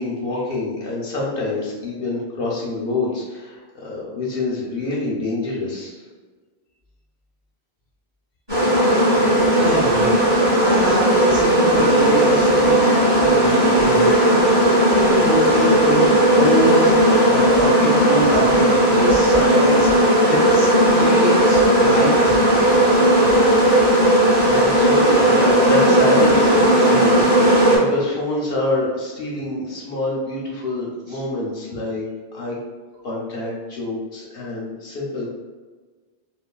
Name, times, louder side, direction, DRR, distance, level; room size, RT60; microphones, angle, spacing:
voice 1, 0.0-6.0 24.4-32.0 32.3-32.6 33.0-35.3, left 2 dB, 60° left, -4 dB, 0.7 m, -26 dB
sound 1, 8.5-27.8, right 1 dB, 20° right, 1.4 m, -16 dB
voice 2, 9.5-10.2 10.5-14.4 14.7-19.9 20.2-22.4 31.1-31.2, equal, 40° right, -8 dB, 1.4 m, -25 dB
3.2 x 2.2 x 2.2 m, 1.4 s
omnidirectional pair, 1.2 m